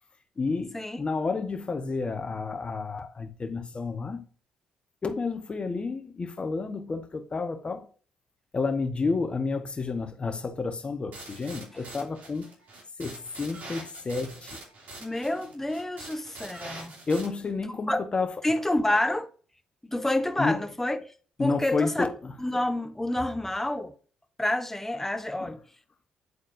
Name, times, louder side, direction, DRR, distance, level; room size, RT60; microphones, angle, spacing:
voice 1, 0.4-4.2 5.0-7.8 8.5-12.5 13.0-14.6 17.1-18.3 20.4-20.6 21.4-22.3 25.4-25.5, left 4 dB, 35° left, 1.2 m, -30 dB
sound 1, 11.1-17.3, right 2 dB, 65° right, 2.8 m, -44 dB
voice 2, 15.0-16.9 17.9-18.0 18.4-19.3 19.9-21.1 21.4-22.1 22.4-23.9 24.4-25.6, left 1 dB, 10° left, 1.0 m, -28 dB
9.6 x 4.1 x 2.7 m
supercardioid pair, 60°, 3 cm